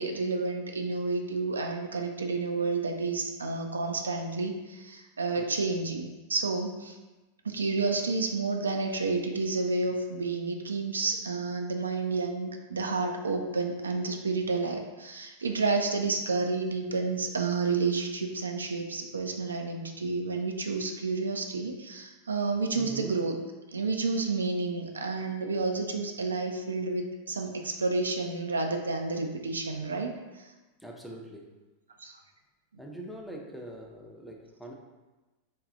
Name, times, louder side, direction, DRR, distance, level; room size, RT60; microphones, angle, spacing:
voice 1, 0.0-7.0 7.4-23.4 23.7-30.1 30.4-30.5 32.0-32.2, right 3 dB, 75° right, 3 dB, 0.3 m, -30 dB
voice 2, 22.8-23.2 30.8-31.6 32.8-34.7, right 1 dB, ahead, 0 dB, 0.5 m, -43 dB
3.7 x 2.3 x 3.7 m, 1.1 s
figure-of-eight pair, 90°, 0 cm